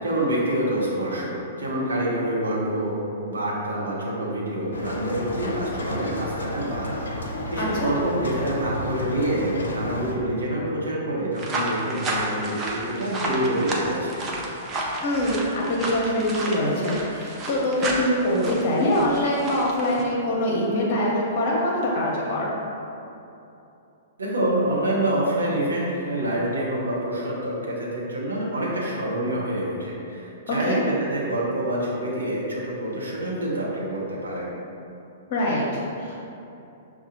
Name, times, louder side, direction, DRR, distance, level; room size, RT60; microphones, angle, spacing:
voice 1, 0.0-14.3 24.2-34.5, right 1 dB, 80° right, -5 dB, 0.9 m, -27 dB
sound 1, 4.7-10.2, left 1 dB, 75° left, 0.5 m, -32 dB
voice 2, 7.6-7.9 15.0-22.6 30.5-30.8 35.3-36.3, left 1 dB, 45° left, -3 dB, 0.8 m, -24 dB
sound 2, 11.4-20.0, right 2 dB, 25° right, 0.6 m, -31 dB
5.8 x 2.3 x 2.8 m, 2.8 s
figure-of-eight pair, 110°, 0 cm